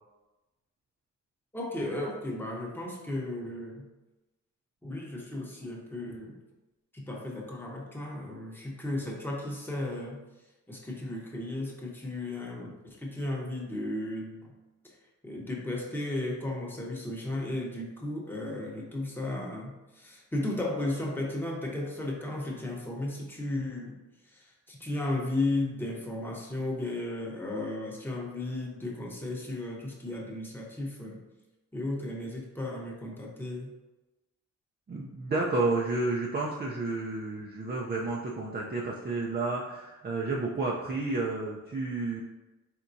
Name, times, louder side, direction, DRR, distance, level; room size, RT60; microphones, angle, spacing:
voice 1, 1.5-3.9 4.8-6.4 6.9-10.2 10.7-14.5 15.2-24.0 24.3-31.2 31.7-33.7, left 2 dB, 5° left, -2 dB, 0.9 m, -34 dB
voice 2, 34.9-42.2, right 3 dB, 35° right, -4 dB, 0.5 m, -31 dB
4.4 x 3.5 x 2.6 m, 1.1 s
wide cardioid pair, 110°, 30 cm